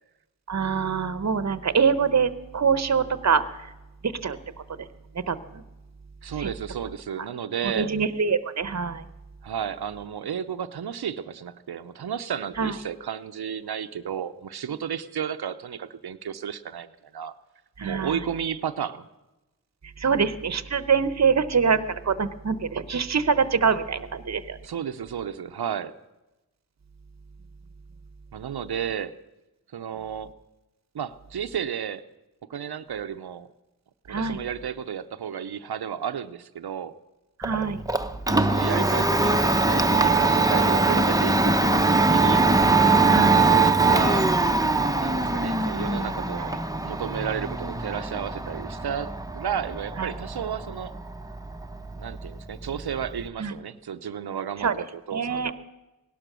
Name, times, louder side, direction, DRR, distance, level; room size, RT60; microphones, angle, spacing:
voice 1, 0.5-3.7 4.2-4.4 4.8-4.9 5.3-5.6 6.4-6.5 7.8-9.0 12.6-12.7 17.8-18.2 20.0-24.6 34.1-34.4 37.4-37.8 40.9-41.0 43.0-43.5 50.0-50.1 53.4-53.5 54.6-54.7 55.1-55.5, right 6 dB, 45° right, 14 dB, 0.8 m, -24 dB
voice 2, 6.2-7.9 9.4-16.9 17.1-17.3 17.8-19.0 24.6-26.0 28.3-29.1 29.7-30.3 30.9-32.0 32.5-33.5 34.1-36.9 38.3-42.5 43.3-44.3 45.0-46.6 46.8-50.9 52.0-55.5, right 8 dB, 75° right, 11 dB, 0.7 m, -32 dB
Domestic sounds home sounds, 37.4-53.3, right 3 dB, 10° right, 0.7 m, -22 dB
17.0 x 12.0 x 6.2 m, 1.0 s
wide cardioid pair, 60°, 38 cm